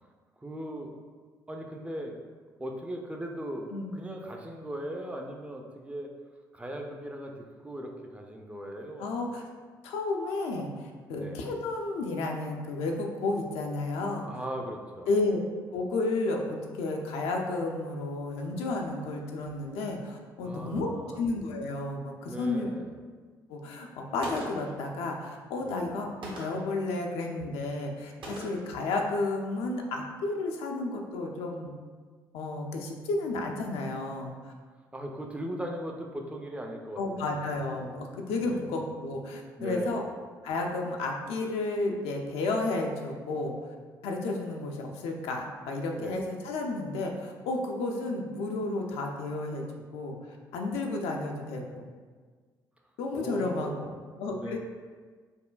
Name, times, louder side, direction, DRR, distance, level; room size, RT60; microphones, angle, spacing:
voice 1, 0.4-0.9 1.5-2.2 2.6-3.7 3.9-6.1 6.5-9.1 11.1-11.5 14.2-15.1 20.4-21.2 22.2-23.0 25.6-25.9 34.9-37.4 38.4-38.7 39.6-40.0 46.0-46.2 53.1-53.9 54.3-54.6, equal, 10° right, 1 dB, 0.5 m, -38 dB
voice 2, 3.7-4.1 9.0-9.5 9.8-14.3 15.1-15.4 15.7-22.7 23.5-31.7 32.3-34.5 37.0-40.0 40.4-43.6 44.0-49.6 49.9-51.9 53.0-53.7 54.1-54.6, left 2 dB, 65° left, 1 dB, 0.4 m, -32 dB
Gunshot gunfire, 24.2-24.8 26.2-26.8 28.2-28.8, right 1 dB, 50° right, 0.8 m, -40 dB
5.3 x 2.1 x 2.3 m, 1.5 s
figure-of-eight pair, 45°, 11 cm